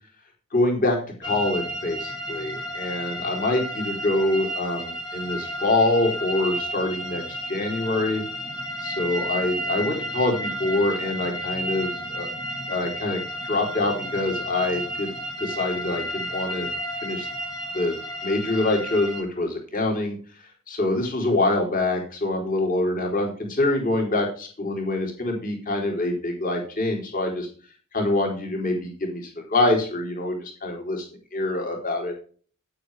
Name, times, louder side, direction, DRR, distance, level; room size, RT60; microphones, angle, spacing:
voice 1, 0.5-8.2 8.8-12.3 12.7-13.2 13.4-15.1 15.4-16.7 17.0-17.3 17.7-17.9 18.2-20.2 20.7-27.5 27.9-31.1 31.3-32.1, left 2 dB, 40° left, 1 dB, 3.8 m, -25 dB
sound 1, 1.2-19.2, equal, 20° left, 2.5 m, -32 dB
9.8 x 8.8 x 4.9 m, 0.41 s
head